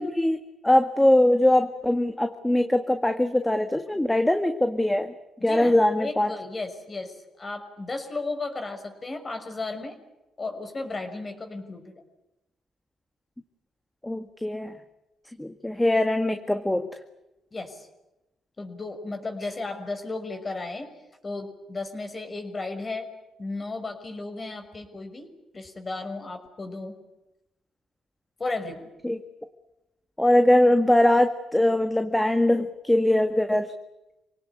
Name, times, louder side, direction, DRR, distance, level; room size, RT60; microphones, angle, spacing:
voice 1, 0.0-5.1 5.4-6.3 14.0-14.7 15.4-16.9 29.0-29.2 30.2-33.7, left 1 dB, 10° left, 7 dB, 1.8 m, -22 dB
voice 2, 5.4-9.9 10.4-12.0 17.5-17.9 18.6-20.9 21.2-23.1 23.4-25.3 25.5-26.9 28.4-28.8, left 3 dB, 30° left, 6 dB, 5.9 m, -34 dB
27.5 x 18.5 x 9.9 m, 0.94 s
cardioid pair, 90°, 0 cm